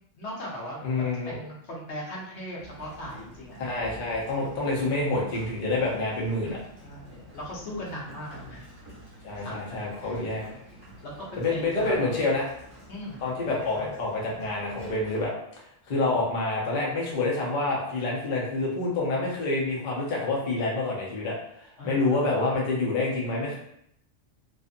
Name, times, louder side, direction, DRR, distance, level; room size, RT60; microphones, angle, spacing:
voice 1, 0.2-3.6 6.8-8.7 9.4-10.1 10.5-10.6 11.0-11.1 11.5-12.2 12.9-13.9 21.8-22.4, equal, 65° left, -4 dB, 1.0 m, -39 dB
voice 2, 0.8-1.4 3.6-6.6 9.2-10.4 11.4-12.5 13.2-15.3 15.9-21.4 21.8-23.6, left 2 dB, 45° left, -4 dB, 0.8 m, -27 dB
Sliding door, 2.6-15.3, equal, 30° left, 1.0 m, -48 dB
2.6 x 2.6 x 2.4 m, 0.74 s
omnidirectional pair, 1.3 m